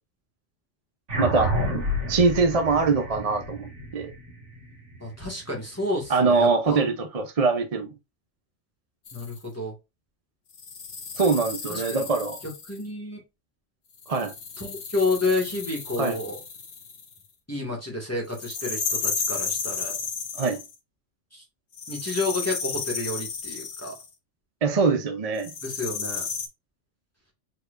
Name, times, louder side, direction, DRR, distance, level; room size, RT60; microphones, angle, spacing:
sound 1, 1.1-5.8, equal, 85° right, 2.3 m, -30 dB
voice 1, 1.2-1.5 2.1-4.1 6.1-7.9 11.2-12.4 14.1-14.3 16.0-16.2 20.4-20.6 24.6-25.5, right 4 dB, 35° right, 0.7 m, -23 dB
voice 2, 5.0-6.8 9.1-9.7 11.7-12.1 12.7-13.2 14.6-16.4 17.5-20.0 21.3-21.4 21.9-24.0 25.6-26.2, left 2 dB, 15° left, 1.8 m, -30 dB
sound 2, 9.1-9.4 10.5-12.8 14.0-17.2 18.3-20.8 21.7-24.1 25.4-26.5, left 5 dB, 75° left, 1.4 m, -33 dB
4.8 x 4.4 x 2.5 m
omnidirectional pair, 1.2 m